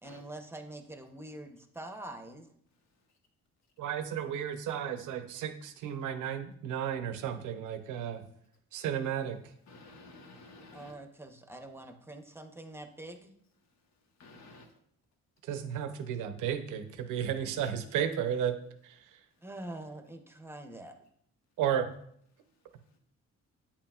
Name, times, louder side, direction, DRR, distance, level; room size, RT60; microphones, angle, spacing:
voice 1, 0.0-2.5 10.7-13.3 19.4-21.0, right 1 dB, 10° right, 5 dB, 0.8 m, -45 dB
voice 2, 3.8-8.2 8.7-9.4 15.4-18.6 18.8-19.2 21.6-21.9, right 9 dB, 90° right, 8 dB, 0.8 m, -33 dB
voice 3, 9.7-10.9 14.2-14.7, left 2 dB, 60° left, 3 dB, 1.2 m, -52 dB
8.2 x 5.8 x 2.4 m, 0.67 s
cardioid pair, 90°, 30 cm